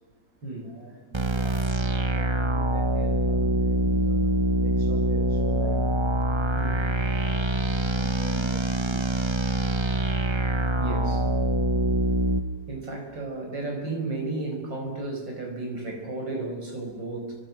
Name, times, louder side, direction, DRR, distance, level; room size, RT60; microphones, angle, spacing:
voice 1, 0.6-4.2 4.6-5.8 7.0-7.5 7.9-9.1, right 2 dB, 50° right, 2 dB, 3.1 m, -45 dB
sound 1, 1.1-12.4, right 1 dB, 20° right, 0.7 m, -24 dB
voice 2, 6.5-6.9 10.8-11.3 12.7-17.4, right 2 dB, 75° right, 2 dB, 6.1 m, -33 dB
29.5 x 25.0 x 6.2 m, 1.3 s
omnidirectional pair, 2.0 m